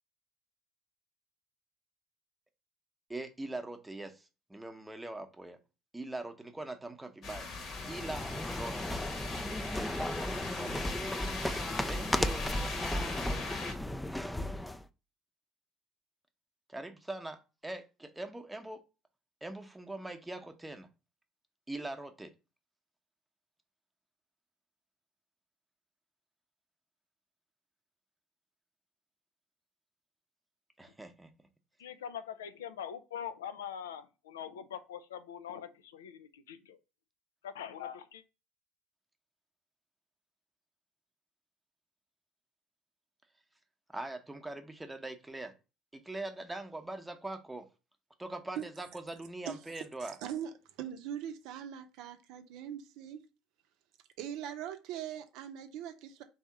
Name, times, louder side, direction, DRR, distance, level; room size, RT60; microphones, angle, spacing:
voice 1, 3.1-5.6 5.9-7.5 7.9-8.2 8.5-9.0 9.8-10.2 10.5-10.9 11.8-12.5 16.7-18.8 19.4-20.9 21.7-22.3 30.8-31.3 43.9-45.5 45.9-47.7 48.2-50.2, right 2 dB, 10° right, 0.8 m, -42 dB
sound 1, 7.2-13.7, left 4 dB, 50° left, 1.0 m, -40 dB
sound 2, 7.7-14.8, left 1 dB, 10° left, 0.4 m, -35 dB
voice 2, 31.8-36.8 37.4-38.2, left 8 dB, 90° left, 0.4 m, -43 dB
voice 3, 50.0-50.5 50.8-53.2 54.2-56.2, right 10 dB, 70° right, 0.6 m, -41 dB
3.6 x 2.8 x 4.5 m
hypercardioid pair, 70°, 0 cm